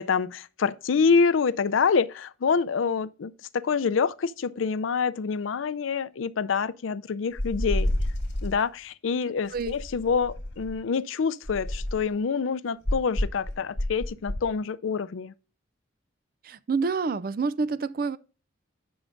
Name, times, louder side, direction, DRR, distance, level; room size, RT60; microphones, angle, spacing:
voice 1, 0.0-7.9 8.4-15.3, left 5 dB, 80° left, 0.5 m, -26 dB
dh flutter collection, 7.4-8.6 9.5-10.8 11.4-12.1 12.8-14.5, left 1 dB, 60° left, 2.9 m, -29 dB
voice 2, 16.4-18.2, right 4 dB, 45° right, 0.4 m, -28 dB
11.0 x 6.2 x 2.6 m
head